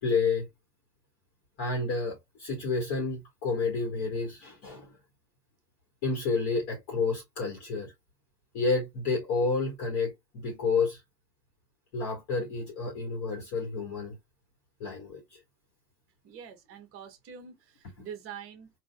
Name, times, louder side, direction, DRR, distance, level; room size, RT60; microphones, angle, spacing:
voice 1, 0.0-0.5 1.6-4.9 6.0-7.9 8.5-11.0 11.9-14.2 14.8-15.4, left 4 dB, 35° left, 1.7 m, -30 dB
voice 2, 16.2-18.7, right 8 dB, 25° right, 1.0 m, -45 dB
4.1 x 2.8 x 2.2 m
hypercardioid pair, 120°, 49 cm